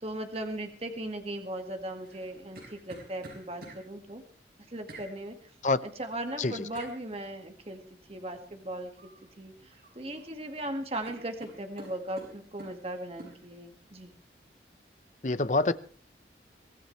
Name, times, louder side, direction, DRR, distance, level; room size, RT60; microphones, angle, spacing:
voice 1, 0.0-4.2 4.7-5.5 5.8-14.2, right 1 dB, 35° right, 1.9 m, -38 dB
sound 1, 2.0-3.8 4.9-5.1 6.7-7.0 8.9-9.2 9.6-10.3 10.6-10.7 11.0-12.8 13.2-13.4, right 1 dB, 55° right, 5.7 m, -48 dB
voice 2, 15.2-15.7, left 3 dB, 45° left, 0.8 m, -25 dB
24.0 x 16.0 x 3.2 m
head